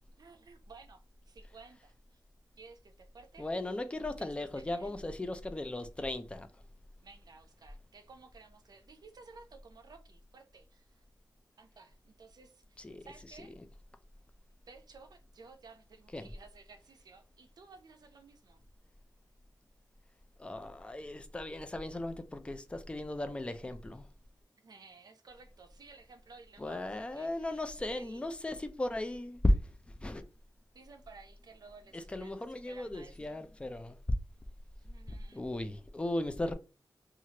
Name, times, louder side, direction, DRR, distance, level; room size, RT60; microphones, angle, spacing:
voice 1, 0.1-2.2 2.6-3.5 4.2-5.0 7.0-11.0 11.6-13.6 14.7-18.6 24.6-27.6 27.9-28.3 30.7-33.4 34.8-35.4, right 4 dB, 60° right, 0.5 m, -56 dB
voice 2, 3.4-6.5 12.8-13.1 13.4-13.5 16.1-16.3 20.4-24.1 26.6-29.7 30.0-30.2 31.9-34.0 35.1-36.5, left 1 dB, 15° left, 0.4 m, -36 dB
3.0 x 2.4 x 2.8 m
wide cardioid pair, 135°, 8 cm